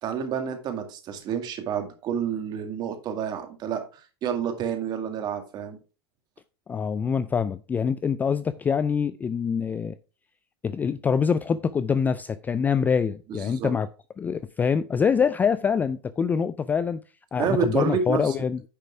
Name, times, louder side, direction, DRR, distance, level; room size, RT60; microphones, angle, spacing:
voice 1, 0.0-5.8 13.3-13.7 17.4-18.4, right 7 dB, 35° right, 2.2 m, -29 dB
voice 2, 6.7-9.9 10.6-13.9 14.2-17.0 17.3-18.6, left 6 dB, 15° left, 0.3 m, -25 dB
10.0 x 5.1 x 4.7 m
supercardioid pair, 135°, 13 cm